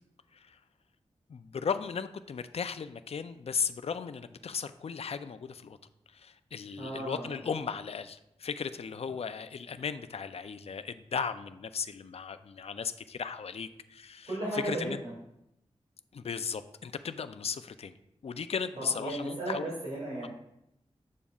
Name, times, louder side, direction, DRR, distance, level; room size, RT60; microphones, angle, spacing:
voice 1, 1.3-5.8 6.1-15.0 16.1-17.9 18.2-19.7, left 6 dB, 60° left, 11 dB, 0.4 m, -36 dB
voice 2, 6.8-7.4 14.3-14.9 18.8-20.3, right 1 dB, 65° right, -7 dB, 2.6 m, -35 dB
7.3 x 6.9 x 2.4 m, 0.83 s
cardioid pair, 50°, 12 cm